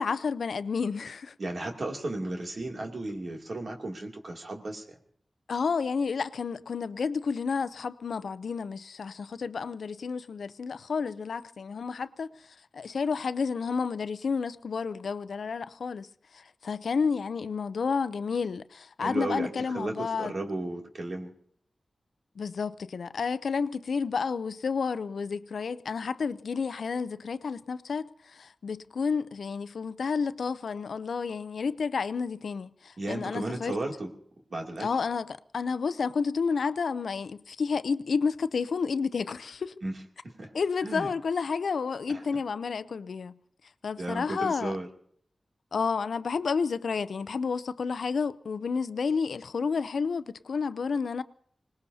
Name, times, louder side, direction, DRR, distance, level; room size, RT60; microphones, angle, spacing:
voice 1, 0.0-1.3 5.5-12.3 12.7-16.1 16.3-20.3 22.4-33.7 34.8-39.7 40.5-43.4 43.8-44.8 45.7-51.2, left 5 dB, 85° left, 0.5 m, -30 dB
voice 2, 1.4-5.0 19.0-21.3 33.0-34.1 34.5-34.9 39.8-39.9 40.2-40.5 40.8-41.1 42.1-42.3 44.0-44.9, right 2 dB, 65° right, 2.6 m, -34 dB
25.5 x 19.5 x 2.8 m
cardioid pair, 40°, 0 cm